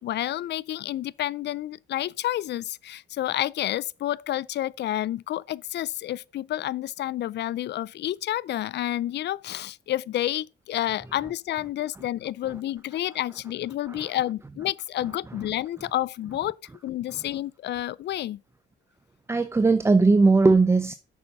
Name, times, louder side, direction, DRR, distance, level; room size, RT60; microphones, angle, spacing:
voice 1, 0.0-16.6 16.8-18.4, left 13 dB, 60° left, 0.4 m, -30 dB
voice 2, 15.0-15.4 19.3-20.9, right 3 dB, 15° right, 0.4 m, -20 dB
6.8 x 5.5 x 5.3 m
cardioid pair, 90°, 20 cm